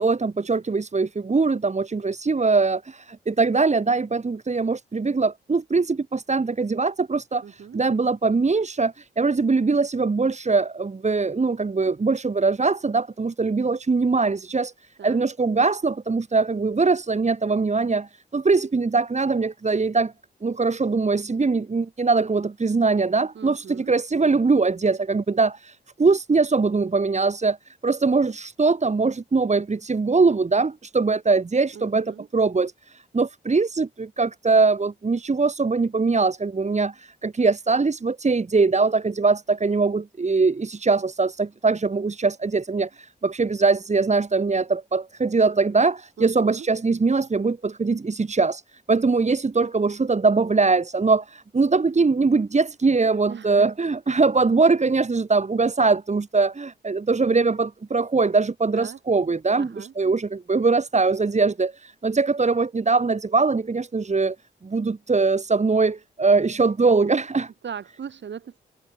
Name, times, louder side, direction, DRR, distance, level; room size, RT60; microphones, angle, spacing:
voice 1, 0.0-14.7 15.0-20.1 20.4-27.6 27.8-48.6 48.9-64.4 64.6-67.5, right 4 dB, 35° right, 2.0 m, -22 dB
voice 2, 7.4-7.8 15.0-15.2 23.3-23.9 31.7-32.3 46.2-46.7 53.3-53.7 58.7-59.0 59.6-59.9 67.6-68.6, right 7 dB, 70° right, 5.8 m, -38 dB
open air
supercardioid pair, 50°, 19 cm